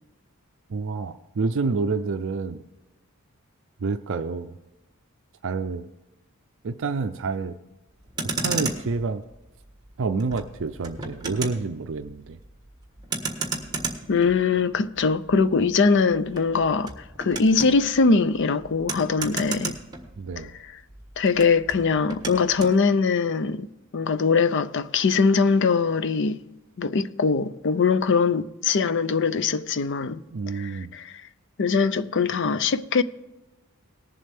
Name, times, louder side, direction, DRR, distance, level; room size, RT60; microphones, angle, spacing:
voice 1, 0.7-2.6 3.8-4.6 5.4-5.9 6.6-7.6 8.4-9.2 10.0-12.4 20.2-20.5 30.3-31.0, right 4 dB, 60° right, 0.5 m, -28 dB
Motor vehicle (road), 8.0-20.6 20.9-22.8, right 3 dB, 20° right, 1.4 m, -34 dB
voice 2, 14.1-19.7 21.2-26.4 26.8-30.2 30.5-31.2 31.6-33.0, left 4 dB, 55° left, 0.5 m, -22 dB
19.0 x 7.5 x 3.5 m
head